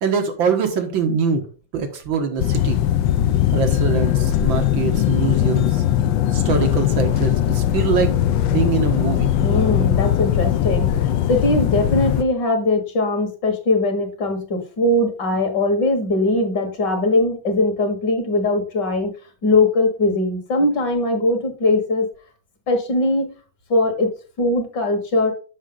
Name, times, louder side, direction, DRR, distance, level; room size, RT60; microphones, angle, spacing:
voice 1, 0.0-1.4 1.7-2.8 3.5-5.8 6.3-9.3, right 6 dB, 90° right, 5 dB, 2.1 m, -23 dB
sound 1, 2.4-12.2, left 11 dB, 80° left, 1.4 m, -19 dB
voice 2, 9.4-19.1 19.4-22.1 22.7-23.3 23.7-24.1 24.4-25.3, left 2 dB, 65° left, 5 dB, 2.2 m, -20 dB
7.2 x 6.3 x 3.8 m, 0.36 s
omnidirectional pair, 2.1 m